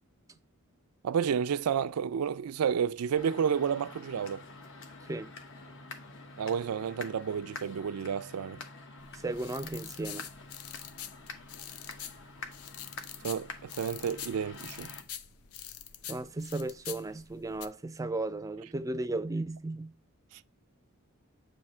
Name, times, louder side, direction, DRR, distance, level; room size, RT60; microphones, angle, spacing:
voice 1, 1.0-4.5 6.4-8.6 13.2-14.9, right 7 dB, 90° right, 0.4 m, -31 dB
sound 1, 3.2-15.0, left 3 dB, 60° left, 1.0 m, -47 dB
sound 2, 9.0-17.7, left 9 dB, 80° left, 0.6 m, -45 dB
voice 2, 9.2-10.3 16.1-19.9, right 2 dB, 15° right, 0.4 m, -35 dB
8.3 x 2.8 x 4.3 m
head